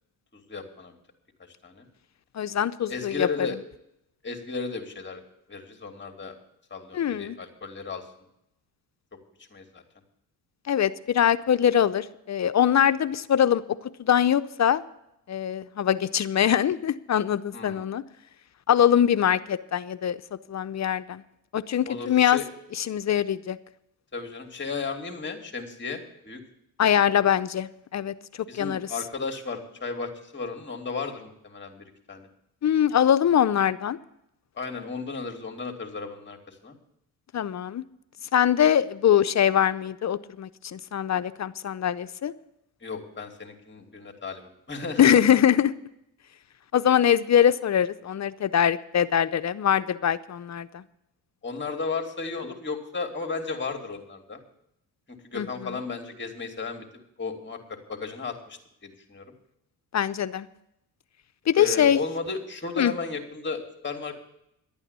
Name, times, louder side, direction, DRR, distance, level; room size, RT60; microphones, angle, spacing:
voice 1, 0.3-1.0 1.6-1.8 2.9-3.6 4.2-5.2 5.5-6.3 6.7-8.0 9.5-9.8 17.5-17.8 21.8-22.4 24.1-26.4 28.5-32.3 34.6-36.8 42.8-45.2 51.4-54.4 55.1-56.8 57.2-59.3 61.6-64.1, left 4 dB, 25° left, 3 dB, 2.7 m, -34 dB
voice 2, 2.3-3.5 6.9-7.4 10.7-13.6 14.0-14.8 15.3-18.0 18.7-20.2 20.5-21.2 21.5-22.4 22.8-23.6 26.8-28.1 28.5-28.9 32.6-34.0 37.3-37.8 38.3-42.3 45.0-45.7 46.7-50.8 55.3-55.8 59.9-60.5 61.5-62.0 62.8-62.9, left 9 dB, 45° left, 13 dB, 0.6 m, -23 dB
12.0 x 9.0 x 8.2 m, 0.81 s
cardioid pair, 75°, 40 cm